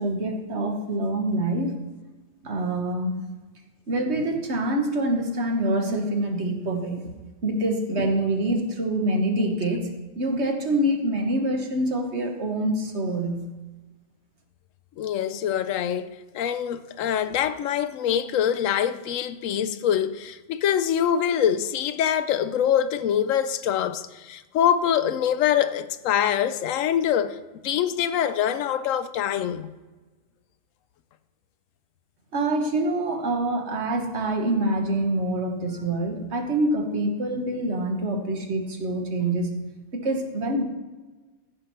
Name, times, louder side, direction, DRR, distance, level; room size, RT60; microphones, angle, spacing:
voice 1, 0.0-1.8 2.4-3.2 3.9-7.1 7.4-9.9 10.2-13.5 32.3-39.6 39.9-40.6, right 1 dB, 60° right, 1.6 m, -25 dB
voice 2, 15.0-27.4 27.6-29.7, left 9 dB, 85° left, 1.0 m, -24 dB
14.5 x 4.9 x 5.7 m
omnidirectional pair, 1.3 m